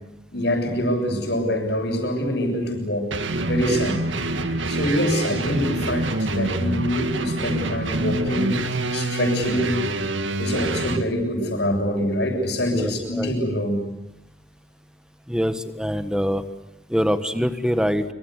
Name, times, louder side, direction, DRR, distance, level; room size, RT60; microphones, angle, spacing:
voice 1, 0.3-3.1 3.4-4.0 4.4-9.9 10.4-13.8, equal, 65° left, 3 dB, 7.2 m, -25 dB
sound 1, 3.1-11.0, right 2 dB, 85° right, 1.9 m, -26 dB
voice 2, 12.7-13.3 15.3-16.4 16.9-18.0, equal, 5° right, 10 dB, 1.4 m, -24 dB
26.5 x 26.0 x 8.2 m, 0.86 s
head